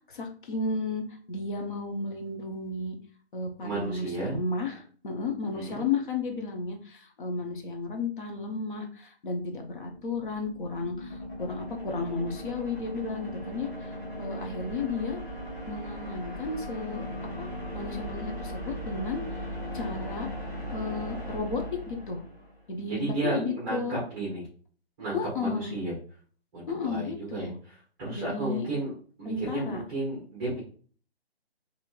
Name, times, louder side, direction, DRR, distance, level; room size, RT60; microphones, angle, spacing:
voice 1, 0.1-2.9 3.3-15.2 15.7-17.0 17.4-19.4 19.7-20.3 20.7-22.2 22.7-24.0 25.1-25.7 26.7-27.6 28.1-28.7 29.2-29.8, left 4 dB, 50° left, 3 dB, 0.7 m, -33 dB
voice 2, 3.6-4.4 5.5-5.8 22.8-24.4 25.0-25.9 26.5-27.5 28.0-28.9 29.2-30.6, right 2 dB, 10° right, -7 dB, 0.7 m, -33 dB
sound 1, 9.6-22.6, equal, 20° left, 1.1 m, -38 dB
2.9 x 2.8 x 2.3 m, 0.43 s
hypercardioid pair, 160°, 32 cm